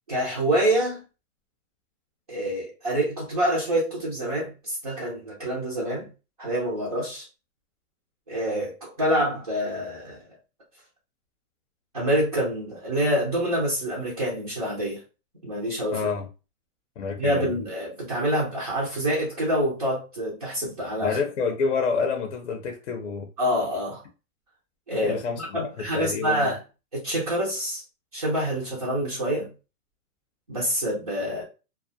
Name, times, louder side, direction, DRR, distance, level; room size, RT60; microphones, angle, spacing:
voice 1, 0.1-1.0 2.3-6.1 6.4-7.3 8.3-10.2 11.9-15.0 15.4-16.1 17.2-21.2 23.4-24.0 24.9-26.6 26.9-27.8 28.1-29.5 30.5-31.4, equal, 25° right, 0.4 m, -26 dB
voice 2, 15.9-16.3 17.0-17.5 21.0-23.3 25.0-25.4 25.8-26.5, left 5 dB, 50° left, 0.6 m, -28 dB
2.3 x 2.1 x 2.6 m
hypercardioid pair, 165°, 45 cm